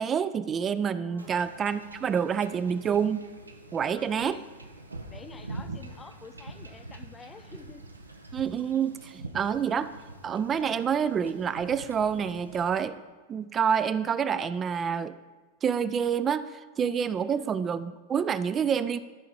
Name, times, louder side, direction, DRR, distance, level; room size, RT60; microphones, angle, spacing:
voice 1, 0.0-3.2 3.7-4.4 8.3-9.9 10.2-13.0 13.3-15.2 15.6-19.0, right 7 dB, 25° right, 14 dB, 0.3 m, -27 dB
voice 2, 1.1-1.4 4.0-4.5 5.1-7.8 17.2-17.6, left 5 dB, 20° left, 8 dB, 0.7 m, -48 dB
Wind / Ocean / Boat Water vehicle, 1.2-12.8, right 2 dB, 80° right, 0.7 m, -45 dB
13.5 x 4.7 x 4.3 m, 1.3 s
figure-of-eight pair, 90°, 0 cm